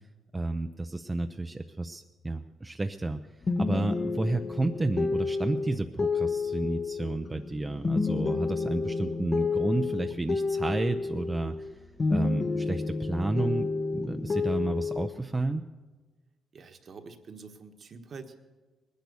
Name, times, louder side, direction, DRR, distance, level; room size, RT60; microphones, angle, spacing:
voice 1, 0.3-3.2 3.6-11.7 12.1-15.6, right 2 dB, 20° right, 6 dB, 0.6 m, -31 dB
sound 1, 3.4-11.7 12.0-15.1, left 4 dB, 35° left, 0.9 m, -30 dB
voice 2, 16.5-18.4, right 4 dB, 50° right, 6 dB, 1.4 m, -46 dB
19.5 x 10.5 x 7.0 m, 1.3 s
cardioid pair, 90°, 0 cm